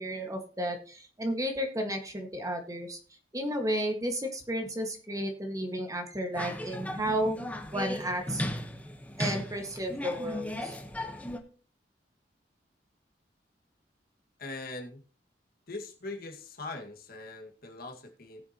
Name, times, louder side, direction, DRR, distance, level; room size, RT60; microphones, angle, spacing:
voice 1, 0.0-3.0 3.3-7.4 7.7-8.4 9.2-10.8, equal, 20° right, 4 dB, 1.7 m, -32 dB
sound 1, 6.3-11.4, left 1 dB, 10° left, 1.1 m, -36 dB
voice 2, 14.4-15.0 15.7-18.4, left 2 dB, 60° left, 3 dB, 1.9 m, -41 dB
19.0 x 6.9 x 2.9 m, 0.38 s
head